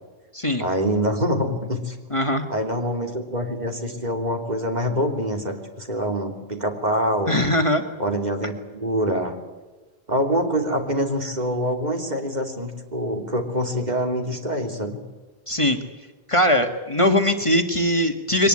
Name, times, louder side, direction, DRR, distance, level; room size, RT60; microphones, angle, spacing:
voice 1, 0.6-2.0 2.5-7.4 8.0-9.3 10.1-15.0, equal, 45° right, 4 dB, 3.1 m, -25 dB
voice 2, 2.1-2.5 7.3-7.8 15.5-15.8 16.3-18.5, left 1 dB, 30° left, 5 dB, 1.8 m, -20 dB
23.0 x 19.5 x 9.8 m, 1.2 s
omnidirectional pair, 1.1 m